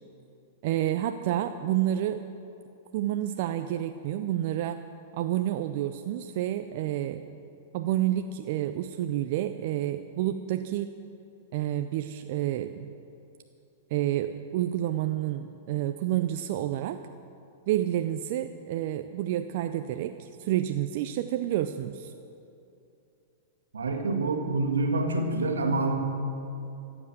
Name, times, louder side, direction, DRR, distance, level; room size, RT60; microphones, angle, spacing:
voice 1, 0.6-2.2 2.9-4.8 5.2-7.2 7.7-11.0 11.5-12.9 13.9-17.0 17.7-22.1, right 12 dB, 55° right, 9 dB, 0.5 m, -29 dB
voice 2, 23.7-25.9, right 2 dB, 90° right, 4 dB, 1.6 m, -27 dB
14.5 x 8.0 x 7.5 m, 2.7 s
hypercardioid pair, 115°, 0 cm